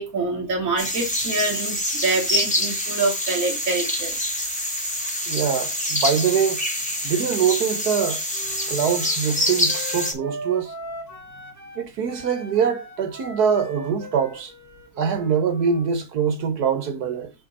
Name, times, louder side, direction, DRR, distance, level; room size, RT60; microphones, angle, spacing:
voice 1, 0.0-4.2, right 3 dB, 60° right, 2.7 m, -25 dB
sound 1, 0.8-10.1, left 1 dB, 5° left, 2.0 m, -26 dB
voice 2, 5.3-6.6 7.0-8.2 8.7-10.7 11.8-14.5 15.0-17.3, right 7 dB, 90° right, 1.8 m, -23 dB
Wind instrument woodwind instrument, 8.3-11.8 12.1-16.0, right 1 dB, 10° right, 2.4 m, -39 dB
6.5 x 4.1 x 5.4 m
omnidirectional pair, 1.6 m